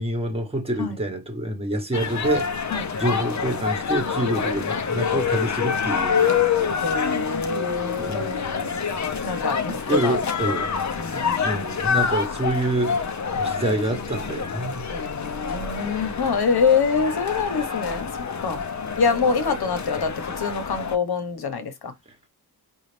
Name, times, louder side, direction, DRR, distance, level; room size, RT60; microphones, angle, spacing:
voice 1, 0.0-2.5 2.9-6.4 8.0-8.3 9.9-10.7 11.1-14.9 15.5-15.6, right 1 dB, 15° right, 1.2 m, -27 dB
sound 1, 1.9-21.0, left 6 dB, 45° left, 0.8 m, -27 dB
voice 2, 6.8-8.8 9.2-10.2 11.0-11.7 14.9-18.1 18.4-18.6 19.0-21.9, left 5 dB, 75° left, 1.2 m, -25 dB
5.5 x 2.5 x 3.3 m
wide cardioid pair, 165°, 38 cm